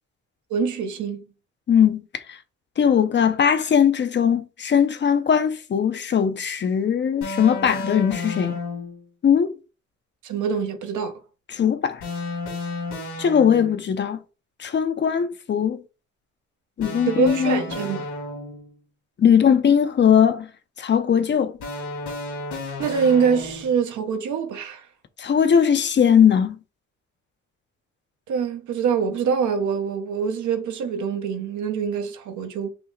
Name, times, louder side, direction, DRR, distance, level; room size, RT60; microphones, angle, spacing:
voice 1, 0.5-1.3 10.2-11.2 17.1-18.1 22.8-24.9 28.3-32.7, right 6 dB, 75° right, 1.0 m, -24 dB
voice 2, 1.7-2.4 2.8-8.6 9.2-9.5 11.5-12.0 13.2-14.2 14.6-15.8 16.8-17.6 19.2-20.5 20.8-21.5 25.2-26.6, left 8 dB, 40° left, 0.5 m, -19 dB
sound 1, 7.2-9.0 12.0-13.9 16.8-18.7 21.6-23.8, left 2 dB, 85° left, 2.5 m, -32 dB
5.7 x 2.1 x 3.9 m
cardioid pair, 90°, 30 cm